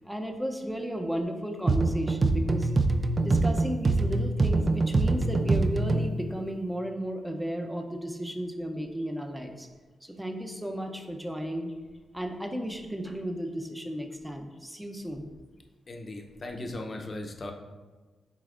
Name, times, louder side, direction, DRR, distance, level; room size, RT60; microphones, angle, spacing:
voice 1, 0.0-2.7 3.2-9.7 10.0-11.7 12.1-15.3 16.5-16.6, equal, 5° right, 4 dB, 0.7 m, -34 dB
sound 1, 1.7-6.2, right 2 dB, 40° right, 0.4 m, -24 dB
voice 2, 15.9-17.5, left 2 dB, 40° left, 3 dB, 0.8 m, -37 dB
10.0 x 4.0 x 2.5 m, 1.3 s
cardioid pair, 85°, 0 cm